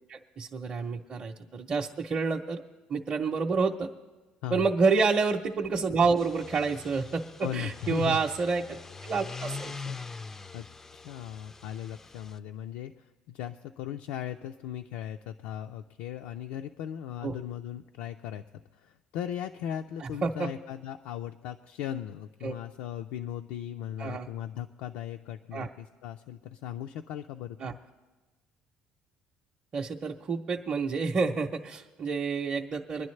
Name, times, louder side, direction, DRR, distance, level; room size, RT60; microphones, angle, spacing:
voice 1, 0.1-2.6 2.9-3.9 4.5-9.9 17.2-17.3 20.0-20.5 22.4-22.5 24.0-24.3 25.5-25.7 27.6-27.7 29.7-33.1, right 4 dB, 30° right, -1 dB, 0.6 m, -29 dB
sound 1, 6.1-12.4, left 4 dB, 15° left, 0.3 m, -43 dB
voice 2, 7.4-8.2 10.5-10.7 10.9-18.4 18.7-27.8, left 10 dB, 85° left, 5 dB, 0.4 m, -38 dB
24.0 x 10.5 x 3.2 m, 1.2 s
cardioid pair, 135°, 3 cm